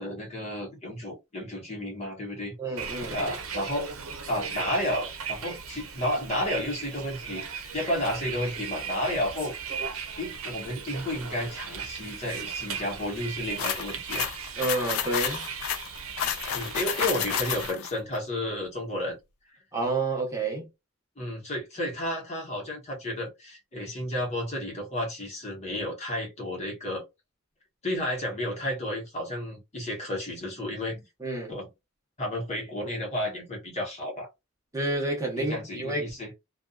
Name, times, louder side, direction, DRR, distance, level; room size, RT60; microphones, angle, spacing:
voice 1, 0.0-2.6 3.1-3.9 4.3-9.5 10.2-14.3 16.5-19.2 21.2-27.0 27.8-31.0 31.5-31.7 32.2-34.3 35.4-36.3, left 1 dB, 35° left, 1.0 m, -32 dB
voice 2, 2.6-3.2 14.6-15.5 19.7-20.7 31.2-31.6 34.7-36.1, right 2 dB, 15° right, 0.9 m, -29 dB
Bus, 2.8-17.7, right 6 dB, 80° right, 0.7 m, -37 dB
sound 1, 13.6-17.9, left 9 dB, 75° left, 0.4 m, -31 dB
2.6 x 2.3 x 2.2 m
head